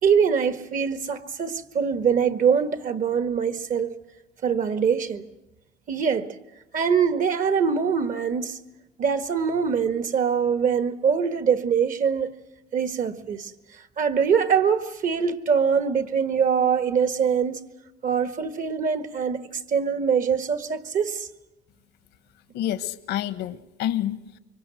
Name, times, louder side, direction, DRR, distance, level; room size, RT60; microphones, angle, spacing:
voice 1, 0.0-4.0 4.4-5.2 5.9-6.4 6.7-8.6 9.0-12.3 12.7-13.5 14.0-17.6 18.0-21.3, right 6 dB, 50° right, 1.6 m, -23 dB
voice 2, 22.5-24.4, left 12 dB, 85° left, 1.3 m, -28 dB
25.5 x 24.0 x 7.6 m
cardioid pair, 110°, 17 cm